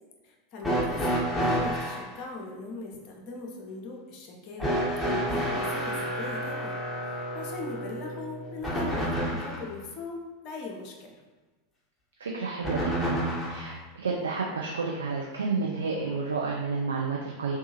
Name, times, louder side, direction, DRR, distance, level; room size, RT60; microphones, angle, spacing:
voice 1, 0.2-4.8 5.1-6.8 7.0-11.2, left 3 dB, 40° left, 0 dB, 0.7 m, -40 dB
sound 1, 0.6-2.1 4.6-9.7 12.6-13.7 14.9-15.0 16.1-16.2, equal, 5° left, 1.0 m, -29 dB
voice 2, 12.2-17.6, right 4 dB, 70° right, -2 dB, 0.3 m, -31 dB
3.5 x 2.7 x 2.8 m, 1.2 s
figure-of-eight pair, 85°, 0 cm